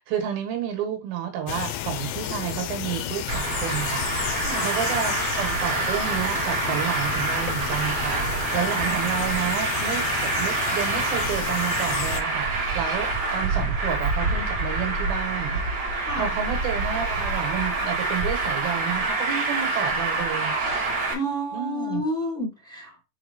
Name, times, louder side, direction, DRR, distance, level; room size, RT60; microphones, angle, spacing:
voice 1, 0.0-4.3 4.6-10.1 10.4-20.5 21.5-22.0, right 9 dB, 80° right, 4 dB, 3.5 m, -30 dB
sound 1, 1.5-12.2, left 11 dB, 85° left, 2.7 m, -32 dB
Traffic noise roadway noise, 3.3-21.1, right 3 dB, 40° right, 1.6 m, -26 dB
voice 2, 4.3-4.6 15.9-16.4 21.1-23.0, equal, 25° left, -2 dB, 2.1 m, -30 dB
6.1 x 4.9 x 3.6 m, 0.25 s
omnidirectional pair, 4.3 m